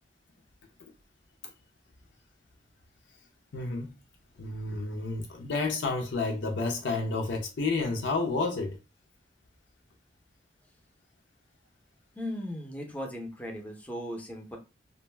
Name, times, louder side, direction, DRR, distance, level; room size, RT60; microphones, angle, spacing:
voice 1, 3.5-3.9 4.4-8.8, left 3 dB, 75° left, 0.5 m, -30 dB
voice 2, 12.2-14.6, equal, 10° left, 0.5 m, -37 dB
2.5 x 2.1 x 3.2 m
head